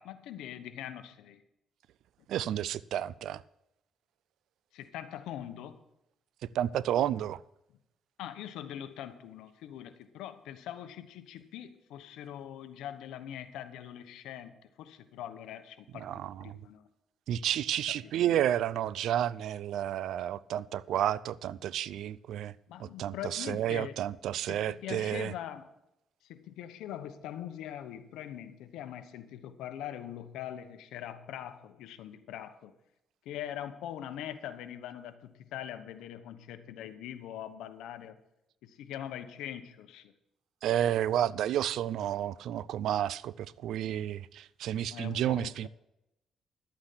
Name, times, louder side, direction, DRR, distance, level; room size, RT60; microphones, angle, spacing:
voice 1, 0.0-1.4 4.7-5.8 8.2-14.5 14.8-16.1 16.4-16.9 18.0-18.1 22.7-24.0 24.5-25.7 26.2-32.7 33.2-38.2 38.6-40.1 44.9-45.7, left 11 dB, 90° left, 1.0 m, -42 dB
voice 2, 2.3-3.4 6.5-7.4 16.0-16.6 17.3-22.5 22.8-25.3 40.6-45.7, right 11 dB, 80° right, 0.4 m, -31 dB
11.5 x 8.8 x 5.8 m
cardioid pair, 90°, 0 cm